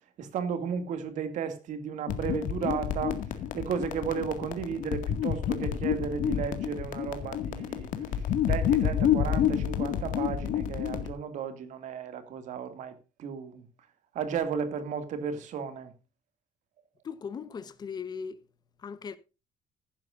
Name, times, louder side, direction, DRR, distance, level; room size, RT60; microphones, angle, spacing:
voice 1, 0.2-3.2 3.5-7.9 8.5-12.9 13.2-13.7 14.1-15.9, right 7 dB, 60° right, 2.3 m, -34 dB
sound 1, 2.1-11.1, left 9 dB, 65° left, 2.0 m, -29 dB
voice 2, 17.0-18.4 18.8-19.2, left 6 dB, 30° left, 1.0 m, -38 dB
15.0 x 11.5 x 2.5 m
cardioid pair, 160°, 14 cm